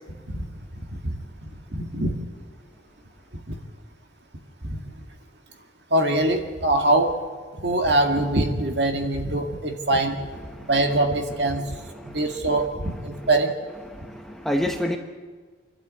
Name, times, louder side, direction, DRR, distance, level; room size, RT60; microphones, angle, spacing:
voice 1, 0.7-1.2 1.7-2.1 3.5-3.6 4.6-4.8 5.9-7.1 7.5-10.2 10.7-11.8 12.1-13.5, right 2 dB, 60° right, 3 dB, 2.1 m, -23 dB
voice 2, 11.5-13.3 13.8-15.0, equal, ahead, 3 dB, 1.0 m, -31 dB
27.0 x 12.0 x 8.6 m, 1.5 s
head